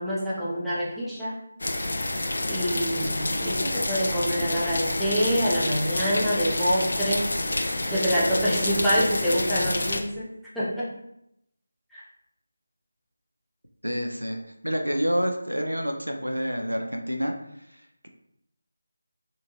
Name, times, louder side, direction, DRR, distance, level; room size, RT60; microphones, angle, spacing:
voice 1, 0.0-1.3 2.5-7.2 7.9-10.3 10.5-10.9 11.9-12.0, equal, ahead, -12 dB, 0.5 m, -26 dB
sound 1, 1.6-10.0, left 2 dB, 55° left, 0.4 m, -28 dB
voice 2, 13.8-14.4 14.6-17.3 17.7-18.1, equal, 85° right, 4 dB, 0.5 m, -28 dB
3.7 x 2.3 x 2.9 m, 0.79 s
figure-of-eight pair, 160°, 0 cm